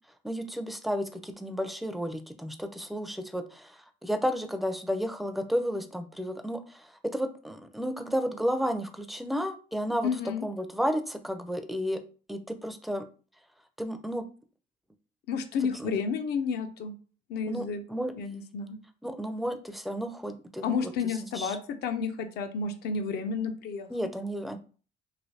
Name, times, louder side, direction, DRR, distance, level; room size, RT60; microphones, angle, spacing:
voice 1, 0.2-10.1 10.4-12.0 12.3-13.1 13.8-14.3 15.8-16.0 17.5-18.1 19.0-20.9 21.2-21.6 23.9-24.6, equal, ahead, 7 dB, 0.4 m, -32 dB
voice 2, 10.0-10.4 15.3-16.9 17.3-17.8 18.2-18.8 20.6-23.9, left 5 dB, 70° left, 7 dB, 0.5 m, -31 dB
3.2 x 2.7 x 2.7 m, 0.38 s
cardioid pair, 110°, 17 cm